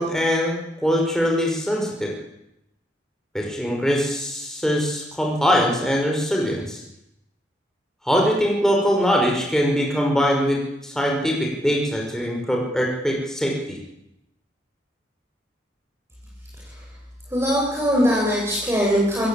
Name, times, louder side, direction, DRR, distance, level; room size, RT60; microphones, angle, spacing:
voice 1, 0.0-2.1 3.3-6.8 8.1-13.8, equal, 5° left, -1 dB, 5.8 m, -22 dB
voice 2, 17.3-19.3, equal, 15° right, -3 dB, 8.0 m, -21 dB
28.0 x 23.0 x 8.7 m, 0.85 s
head